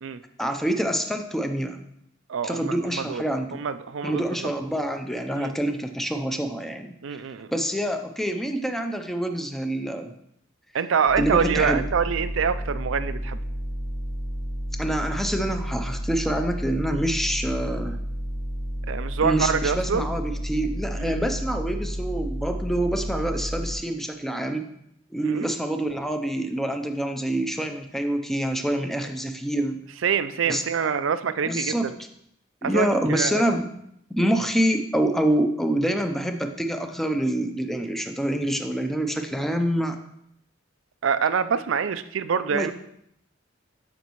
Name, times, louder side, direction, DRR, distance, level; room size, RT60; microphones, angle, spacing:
voice 1, 0.4-1.8 2.4-3.6 4.0-6.9 7.5-10.1 11.2-11.8 14.8-18.0 19.2-24.7 25.1-29.8 30.5-30.9 31.4-31.9 32.6-33.6 34.1-40.0 42.5-42.7, right 1 dB, ahead, 6 dB, 0.6 m, -26 dB
voice 2, 2.3-3.2 3.5-4.2 5.4-5.5 7.0-7.5 10.7-13.4 18.9-20.1 21.0-21.2 25.2-25.5 30.0-32.0 32.6-33.4 41.0-42.7, right 6 dB, 75° right, 13 dB, 0.5 m, -25 dB
sound 1, 11.1-23.7, equal, 85° left, 1.2 m, -31 dB
12.5 x 5.2 x 3.1 m, 0.75 s
head